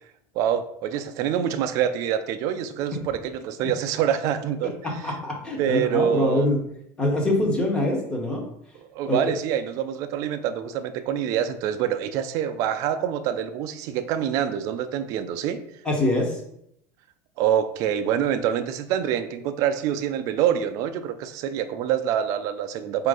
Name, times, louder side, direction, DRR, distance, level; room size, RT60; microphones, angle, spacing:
voice 1, 0.4-4.7 5.6-6.5 8.9-15.6 17.4-23.1, right 9 dB, 40° right, 9 dB, 0.4 m, -26 dB
voice 2, 4.8-6.6 7.0-8.5 9.1-9.2 15.8-16.4, left 1 dB, 10° left, 1 dB, 0.7 m, -24 dB
4.4 x 2.5 x 4.7 m, 0.75 s
cardioid pair, 175°, 8 cm